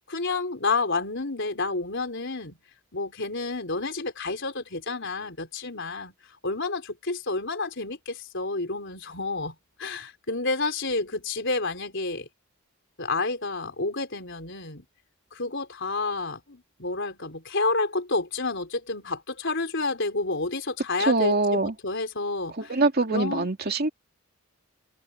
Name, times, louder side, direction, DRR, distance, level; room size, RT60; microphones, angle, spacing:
voice 1, 0.1-2.6 2.9-6.1 6.4-12.3 13.0-14.9 15.3-22.8 23.1-23.5, left 3 dB, 55° left, 4.4 m, -30 dB
voice 2, 21.0-21.7 22.6-23.9, right 2 dB, 45° right, 2.8 m, -24 dB
head